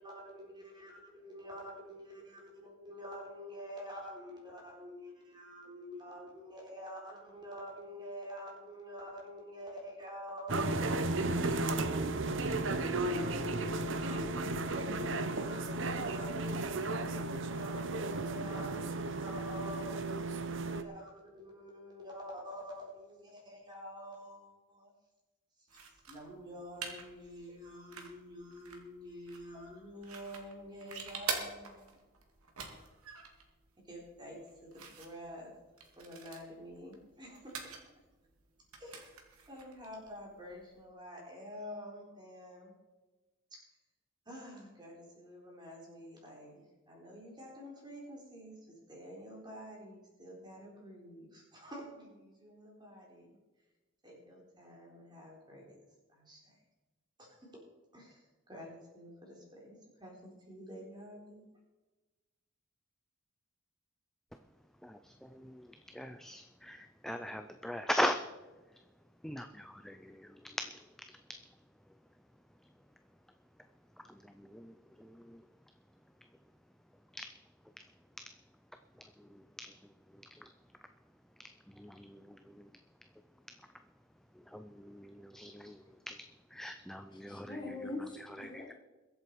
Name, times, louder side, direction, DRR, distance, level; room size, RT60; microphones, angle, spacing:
voice 1, 0.0-11.5 12.7-24.9 26.1-32.1 33.9-35.5 36.0-37.6 38.8-39.0 39.5-42.7 43.5-43.6 44.3-53.4 54.0-55.8 56.1-56.6 57.2-57.6 57.9-61.4, equal, 20° right, -2 dB, 4.0 m, -48 dB
sound 1, 10.5-20.8, right 2 dB, 60° right, 0.8 m, -34 dB
sound 2, 25.7-40.8, right 5 dB, 90° right, 2.4 m, -47 dB
voice 2, 64.8-65.7 65.9-68.2 69.2-70.6 74.1-75.4 77.1-77.2 79.2-79.7 80.3-80.4 81.7-82.7 84.5-86.2 86.5-87.6 88.4-88.7, equal, ahead, 7 dB, 0.4 m, -40 dB
voice 3, 87.1-88.7, left 2 dB, 20° left, 1 dB, 1.7 m, -43 dB
22.0 x 8.1 x 4.7 m, 1.2 s
head